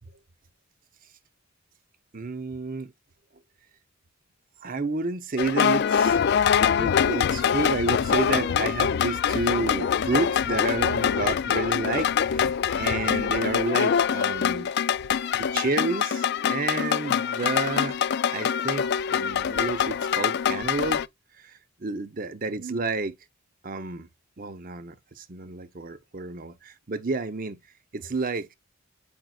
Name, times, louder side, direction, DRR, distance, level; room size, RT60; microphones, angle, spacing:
voice 1, 2.1-2.9 4.6-6.3 6.8-12.5 12.8-14.7 15.3-18.0 18.3-21.0 21.3-23.2 23.6-24.1 24.4-27.6 27.9-28.5, right 3 dB, 40° right, 0.7 m, -30 dB
sound 1, 5.4-21.1, left 8 dB, 50° left, 0.3 m, -24 dB
9.0 x 5.2 x 2.4 m
head